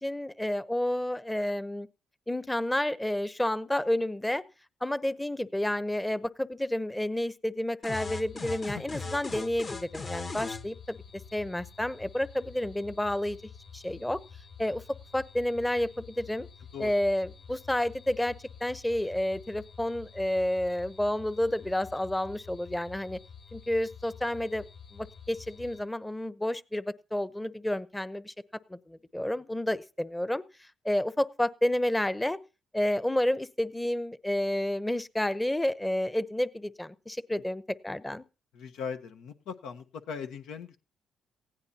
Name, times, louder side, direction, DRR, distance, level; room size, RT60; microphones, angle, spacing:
voice 1, 0.0-1.9 2.3-4.4 4.8-11.0 11.3-13.4 13.7-14.2 14.6-14.8 15.1-16.5 16.8-18.3 18.6-23.2 23.5-24.6 24.9-28.3 28.7-30.4 30.8-32.4 32.7-38.2, left 1 dB, 10° left, 15 dB, 0.8 m, -30 dB
sound 1, 7.8-10.6, left 4 dB, 40° left, 1.2 m, -37 dB
sound 2, 8.0-25.8, left 6 dB, 70° left, 5.8 m, -49 dB
voice 2, 38.5-40.8, left 6 dB, 85° left, 7 dB, 1.2 m, -39 dB
18.5 x 16.0 x 2.9 m, 0.32 s
cardioid pair, 90°, 0 cm